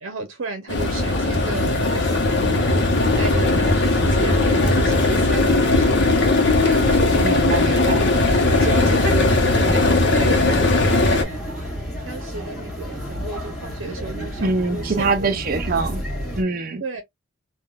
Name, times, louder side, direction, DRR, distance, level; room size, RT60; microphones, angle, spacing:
voice 1, 0.0-2.8 3.2-7.3 8.1-11.5 12.0-15.9 16.8-17.0, right 3 dB, 80° right, 0.7 m, -33 dB
sound 1, 0.7-11.2, left 2 dB, 55° left, 0.7 m, -18 dB
sound 2, 0.7-16.4, equal, ahead, 1.4 m, -30 dB
voice 2, 7.2-8.1 14.4-16.0 16.4-16.8, right 3 dB, 45° right, 0.5 m, -24 dB
3.4 x 2.3 x 2.2 m
head